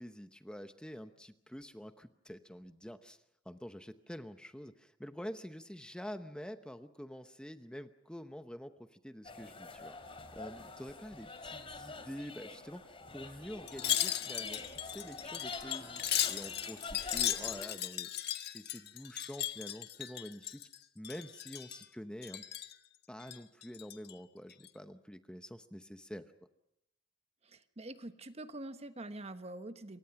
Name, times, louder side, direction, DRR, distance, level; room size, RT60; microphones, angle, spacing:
voice 1, 0.0-3.2 3.4-10.0 10.3-18.1 18.4-20.6 20.9-22.4 23.1-26.3, equal, 5° left, 8 dB, 0.9 m, -47 dB
sound 1, 9.2-17.6, left 3 dB, 30° left, 3.3 m, -46 dB
Wind chime, 13.7-20.8 21.0-21.9 22.2-22.8 23.2-24.1 24.5-24.7, left 11 dB, 60° left, 1.5 m, -37 dB
voice 2, 27.4-30.0, right 2 dB, 35° right, 9 dB, 1.3 m, -45 dB
28.0 x 24.0 x 5.9 m, 0.81 s
head